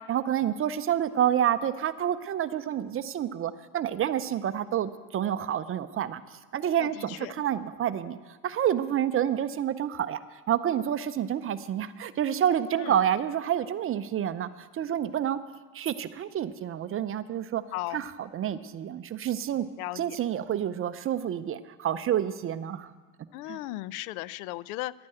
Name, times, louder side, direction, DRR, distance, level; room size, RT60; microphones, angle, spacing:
voice 1, 0.0-8.2 8.4-15.4 15.7-17.6 17.9-19.7 19.9-22.9 23.5-23.6, right 10 dB, 30° right, 13 dB, 0.6 m, -28 dB
voice 2, 6.8-7.3 12.8-12.9 17.7-18.0 19.8-20.2 23.3-24.9, left 17 dB, 70° left, 20 dB, 0.5 m, -36 dB
11.5 x 9.6 x 7.7 m, 1.3 s
supercardioid pair, 95°, 45 cm